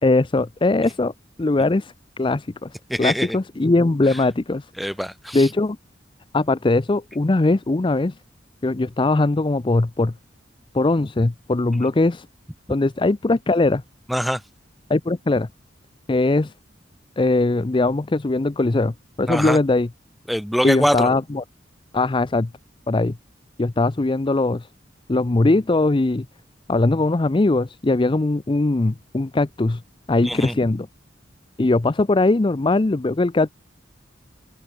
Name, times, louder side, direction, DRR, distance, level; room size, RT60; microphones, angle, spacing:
voice 1, 0.0-1.1 1.4-2.7 3.0-4.7 5.3-5.8 6.3-8.1 8.6-10.1 10.7-12.3 12.7-13.8 14.9-15.5 16.1-16.5 17.2-19.9 20.6-21.4 21.9-22.5 22.9-23.1 23.6-24.7 25.1-26.3 26.7-29.8 30.1-30.9 31.6-33.5, left 2 dB, 25° left, 0.5 m, -20 dB
voice 2, 2.9-3.4 4.1-4.2 4.8-5.5 11.8-11.9 14.1-14.4 19.3-19.6 20.3-21.1 30.2-30.6, equal, ahead, 3.6 m, -24 dB
head